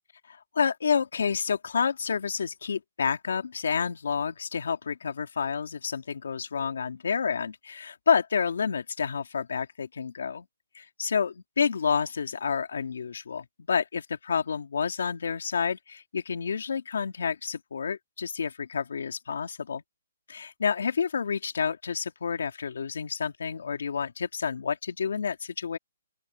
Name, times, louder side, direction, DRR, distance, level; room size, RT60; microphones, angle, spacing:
voice 1, 0.3-10.5 10.7-19.8 20.3-25.8, left 6 dB, 75° left, 2.6 m, -29 dB
open air
hypercardioid pair, 175°, 0 cm